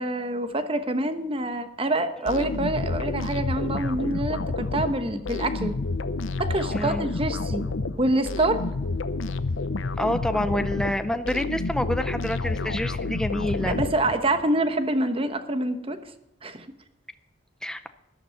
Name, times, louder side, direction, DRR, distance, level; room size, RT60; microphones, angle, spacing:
voice 1, 0.0-5.7 6.4-7.6 8.0-8.6 13.6-16.0 16.4-16.7, right 1 dB, 30° right, 9 dB, 1.1 m, -26 dB
sound 1, 2.3-14.5, left 3 dB, 85° left, 0.8 m, -29 dB
voice 2, 6.7-7.0 10.0-13.8 17.6-17.9, left 1 dB, 5° left, 9 dB, 0.5 m, -28 dB
14.0 x 11.5 x 5.8 m, 0.86 s
head